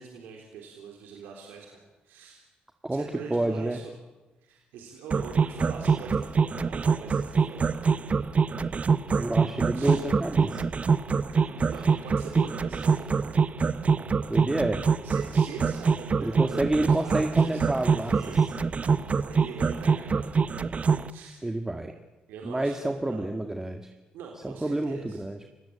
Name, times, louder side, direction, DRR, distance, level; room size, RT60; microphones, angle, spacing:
voice 1, 0.0-2.5 2.9-3.9 4.4-7.8 9.7-10.0 11.3-13.4 14.2-14.3 15.0-18.9 19.2-20.5 21.1-21.4 22.3-23.3 24.1-25.2, right 5 dB, 90° right, 1 dB, 3.7 m, -43 dB
voice 2, 2.8-3.8 9.2-10.7 14.3-14.8 16.2-18.5 21.4-21.9 22.4-23.8 24.4-25.4, right 1 dB, 15° right, 5 dB, 1.9 m, -29 dB
sound 1, 5.1-21.1, right 5 dB, 45° right, 1.0 m, -24 dB
30.0 x 17.0 x 8.8 m, 1.1 s
supercardioid pair, 65°, 3 cm